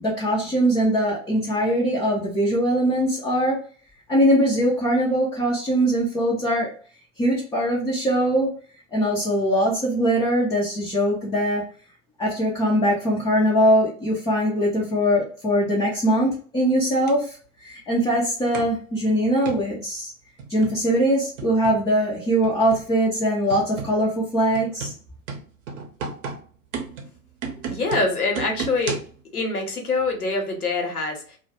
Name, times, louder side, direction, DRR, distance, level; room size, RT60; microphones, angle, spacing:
voice 1, 0.0-3.6 4.1-6.7 7.2-8.5 8.9-11.6 12.2-20.1 20.5-24.9, equal, 10° left, -5 dB, 0.3 m, -21 dB
sound 1, 17.1-17.2 18.5-18.8 19.5-19.7 20.4-20.8 21.4-21.9 22.4-22.9 23.5-24.0 24.5-29.2, right 5 dB, 60° right, 0.7 m, -34 dB
voice 2, 27.5-29.0 29.3-31.4, left 3 dB, 85° left, 2 dB, 0.8 m, -25 dB
2.2 x 2.1 x 2.8 m, 0.43 s
figure-of-eight pair, 85°, 43 cm